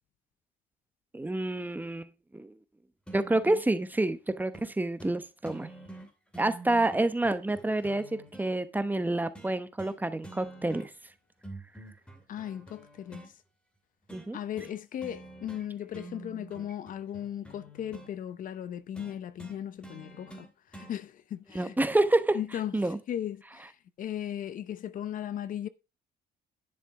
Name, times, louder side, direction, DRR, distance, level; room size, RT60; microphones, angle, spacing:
voice 1, 1.1-2.5 3.1-5.7 6.4-10.9 14.1-14.4 21.5-22.4 22.7-23.0, right 2 dB, 10° right, 0.9 m, -28 dB
sound 1, 3.1-3.7 4.5-4.7 5.0-5.2 5.5-8.5 9.4-10.0 10.2-11.1 11.4-13.3 14.1-14.3 14.6-14.8 15.0-15.7 15.9-18.1 19.0-20.9 22.0-22.1, right 2 dB, 5° left, 2.6 m, -47 dB
voice 2, 12.3-13.3 14.3-21.8 22.3-22.8 23.1-25.7, left 10 dB, 55° left, 0.7 m, -37 dB
10.5 x 6.9 x 4.7 m
cardioid pair, 110°, 17 cm